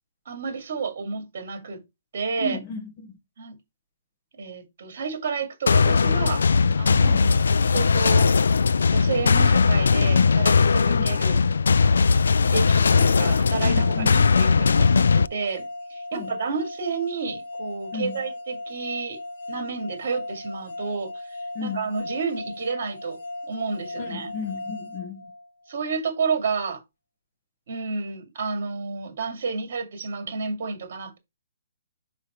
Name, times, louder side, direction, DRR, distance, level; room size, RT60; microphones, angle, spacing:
voice 1, 0.3-1.8 2.1-2.6 3.4-3.5 4.4-6.4 6.8-8.3 8.9-11.4 12.5-15.6 15.9-19.2 19.5-21.2 21.6-23.2 23.5-24.3 25.7-26.8 27.7-31.2, right 5 dB, 45° right, 2.3 m, -30 dB
voice 2, 2.4-3.2 7.0-7.3 10.9-11.2 13.6-14.2 16.1-16.4 17.9-18.2 21.5-21.9 24.0-25.2, left 4 dB, 25° left, 1.2 m, -34 dB
sound 1, 5.7-15.3, left 5 dB, 80° left, 0.3 m, -19 dB
sound 2, 12.8-25.8, left 2 dB, 60° left, 2.2 m, -37 dB
5.0 x 4.8 x 4.3 m
hypercardioid pair, 170°, 0 cm